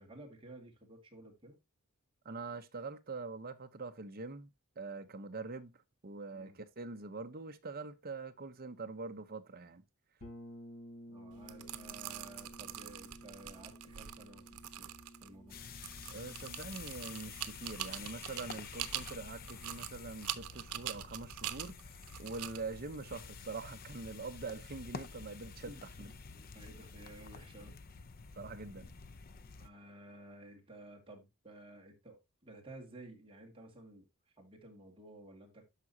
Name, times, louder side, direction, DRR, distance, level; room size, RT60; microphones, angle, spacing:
voice 1, 0.0-1.6 6.3-6.6 11.1-14.9 15.2-15.6 25.6-27.8 28.7-28.9 29.6-34.1 34.4-35.7, right 1 dB, 25° right, 2.1 m, -54 dB
voice 2, 2.2-4.5 4.8-5.7 6.0-9.8 16.1-26.1 28.4-28.9, right 3 dB, 45° right, 0.8 m, -44 dB
sound 1, 10.2-19.9, equal, 80° left, 3.4 m, -55 dB
sound 2, 11.3-24.1, right 12 dB, 85° right, 0.8 m, -45 dB
sound 3, 15.5-29.7, left 5 dB, 40° left, 0.6 m, -49 dB
12.5 x 4.9 x 2.8 m
head